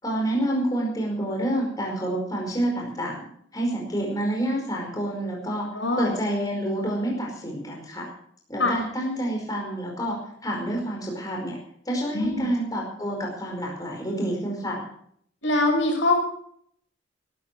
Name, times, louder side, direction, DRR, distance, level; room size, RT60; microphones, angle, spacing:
voice 1, 0.0-3.3 3.5-5.7 6.0-8.1 8.5-11.6 11.8-14.8, right 1 dB, 20° left, -1 dB, 4.9 m, -28 dB
voice 2, 5.7-6.1 8.6-8.7 12.1-12.5 15.4-16.2, left 2 dB, 70° left, 1 dB, 6.3 m, -23 dB
16.5 x 14.5 x 4.6 m, 0.65 s
head